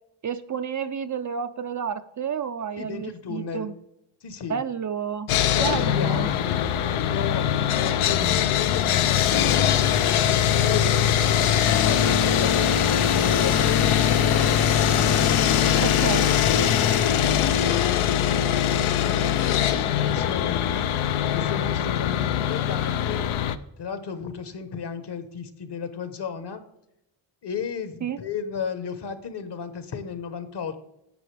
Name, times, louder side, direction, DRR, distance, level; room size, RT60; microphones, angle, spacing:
voice 1, 0.2-3.7 4.5-5.3 5.5-6.3 15.8-16.3 28.0-28.2, right 7 dB, 40° right, 9 dB, 0.5 m, -30 dB
voice 2, 2.8-3.8 4.2-4.6 5.5-9.5 10.1-14.0 14.8-16.7 17.6-20.7 21.3-23.3 23.8-26.6 27.4-30.8, left 6 dB, 55° left, 10 dB, 1.2 m, -34 dB
Sawing, 5.3-23.6, left 10 dB, 80° left, 0.7 m, -22 dB
sound 1, 9.5-17.8, left 6 dB, 35° left, 0.5 m, -27 dB
10.5 x 7.6 x 3.4 m, 0.84 s
cardioid pair, 100°, 49 cm